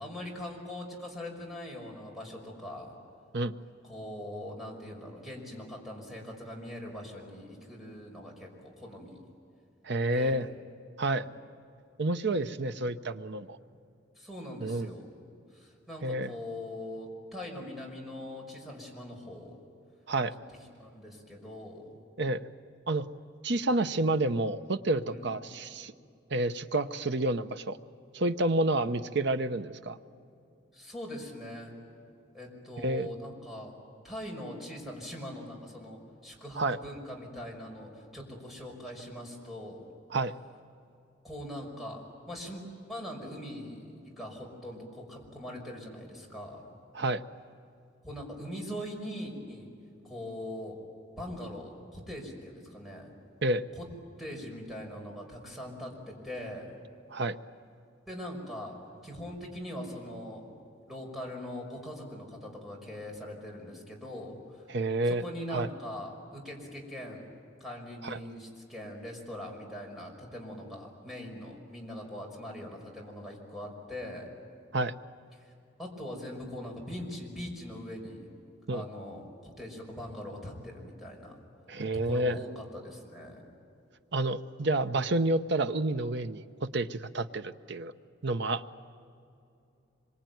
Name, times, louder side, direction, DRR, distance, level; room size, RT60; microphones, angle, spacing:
voice 1, 0.0-3.0 3.8-9.2 10.1-10.5 11.1-11.3 14.2-15.1 15.5-19.6 20.8-22.0 25.1-25.3 30.7-31.7 32.3-33.7 34.0-39.9 41.2-42.6 42.9-46.6 48.0-49.7 50.0-50.8 51.2-53.1 53.8-53.9 54.2-56.8 58.1-58.8 59.0-60.5 60.9-64.7 65.1-67.3 67.6-74.3 75.4-75.5 75.8-78.3 78.7-81.3 81.9-83.4, left 1 dB, ahead, -1 dB, 5.7 m, -42 dB
voice 2, 9.8-10.5 11.0-11.2 12.0-13.6 14.6-14.9 16.0-16.3 20.1-20.3 22.2-22.5 22.9-23.1 23.4-25.9 26.3-27.8 28.1-30.0 32.8-33.1 36.6-36.8 40.1-40.3 46.9-47.2 53.4-53.6 57.1-57.4 64.7-65.2 65.5-65.7 68.0-68.2 74.7-74.9 78.7-78.8 81.7-82.4 84.1-87.9 88.2-88.6, right 2 dB, 65° right, 10 dB, 0.9 m, -29 dB
26.0 x 24.0 x 9.4 m, 2.6 s
head